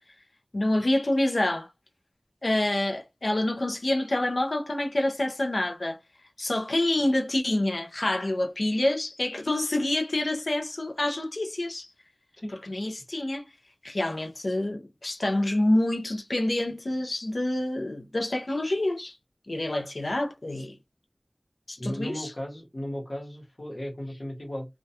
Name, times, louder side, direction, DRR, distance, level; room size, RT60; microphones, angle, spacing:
voice 1, 0.5-1.7 2.4-6.0 6.4-11.9 12.7-13.4 13.8-19.2 19.5-20.7 21.7-22.3, left 1 dB, 85° left, 0.5 m, -27 dB
voice 2, 21.8-24.7, equal, 60° left, 1.0 m, -35 dB
2.2 x 2.2 x 2.7 m
wide cardioid pair, 45°, 0 cm